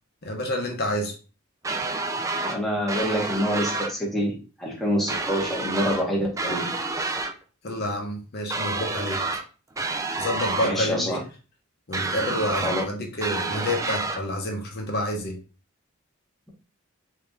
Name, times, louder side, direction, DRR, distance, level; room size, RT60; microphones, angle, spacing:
voice 1, 0.2-1.1 7.6-9.2 10.2-11.2 11.9-15.4, left 1 dB, 50° left, 0.8 m, -29 dB
sound 1, 1.6-2.6 2.9-3.9 5.1-6.0 6.4-7.3 8.5-9.4 9.8-10.7 11.9-12.9 13.2-14.2, right 3 dB, 15° right, 0.4 m, -29 dB
voice 2, 2.4-7.2 10.6-11.2 12.6-12.8, equal, ahead, 0.9 m, -27 dB
3.4 x 2.8 x 3.5 m
head